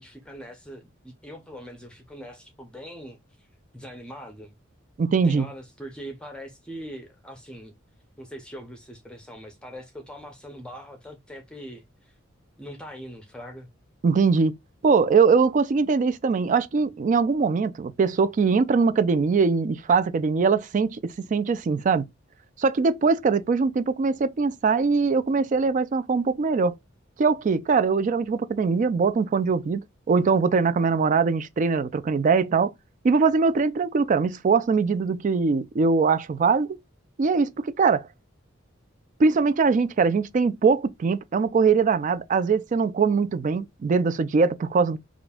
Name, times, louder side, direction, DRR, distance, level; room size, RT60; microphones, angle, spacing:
voice 1, 0.0-3.5 3.7-4.5 5.2-7.7 8.2-12.1 12.6-13.7, equal, 5° left, 0.6 m, -42 dB
voice 2, 5.0-5.5 14.0-14.5 14.8-22.1 22.6-26.7 27.2-32.7 33.0-36.8 37.2-38.1 39.2-45.0, right 5 dB, 40° right, 0.3 m, -22 dB
5.1 x 2.5 x 2.3 m
head